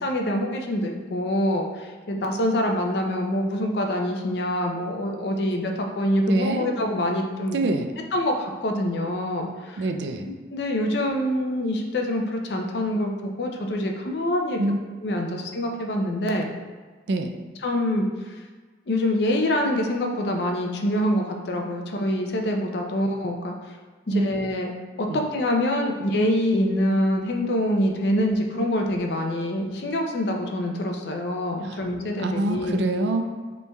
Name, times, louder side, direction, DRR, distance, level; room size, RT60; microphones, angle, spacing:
voice 1, 0.0-7.6 8.1-9.8 10.2-14.6 15.0-16.5 17.6-18.1 18.9-23.5 24.1-24.7 25.0-32.8, left 1 dB, 65° left, 2 dB, 0.5 m, -25 dB
voice 2, 6.3-6.7 7.5-7.9 9.8-10.3 14.6-14.8 15.3-15.4 17.1-17.3 24.1-24.3 25.1-25.3 31.6-31.8 32.2-33.2, right 2 dB, 70° right, 6 dB, 0.4 m, -25 dB
5.2 x 3.2 x 2.3 m, 1.4 s
head